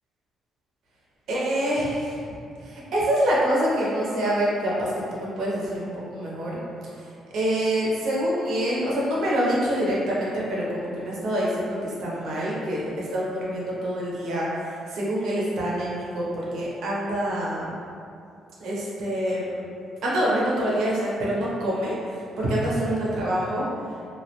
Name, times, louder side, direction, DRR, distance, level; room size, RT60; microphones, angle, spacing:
voice 1, 1.3-2.3 2.6-6.6 6.9-7.1 7.3-17.8 18.6-19.6 20.0-23.7, equal, 75° right, -6 dB, 0.6 m, -26 dB
2.3 x 2.1 x 2.9 m, 2.5 s
cardioid pair, 90°, 0 cm